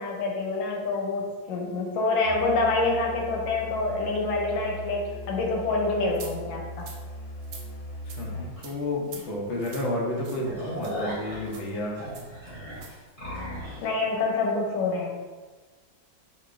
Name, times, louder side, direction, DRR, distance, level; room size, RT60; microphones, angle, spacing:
voice 1, 0.0-6.9 13.8-15.2, left 3 dB, 90° left, 0 dB, 1.4 m, -27 dB
Musical instrument, 2.2-8.6, equal, 50° left, 1.2 m, -39 dB
sound 1, 6.1-6.3 6.8-7.0 7.4-7.7 8.1-8.2 8.6-8.7 9.1-9.2 9.6-9.9 10.2-10.4 10.8-10.9 11.5-11.7 12.1-12.3 12.7-12.9, right 6 dB, 75° right, 1.2 m, -44 dB
voice 2, 8.1-12.0, left 1 dB, 75° left, -2 dB, 0.6 m, -31 dB
sound 2, 8.6-8.7 9.1-9.2 9.6-9.7 10.1-13.8, left 1 dB, 25° left, 0.9 m, -37 dB
3.8 x 2.9 x 2.4 m, 1.3 s
omnidirectional pair, 2.1 m